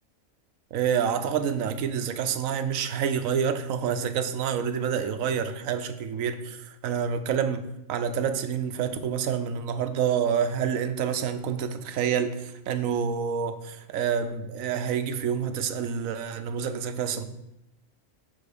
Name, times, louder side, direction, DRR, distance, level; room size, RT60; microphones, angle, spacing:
voice 1, 0.7-17.2, right 7 dB, 80° right, 9 dB, 1.1 m, -28 dB
7.2 x 4.3 x 6.6 m, 0.87 s
omnidirectional pair, 1.4 m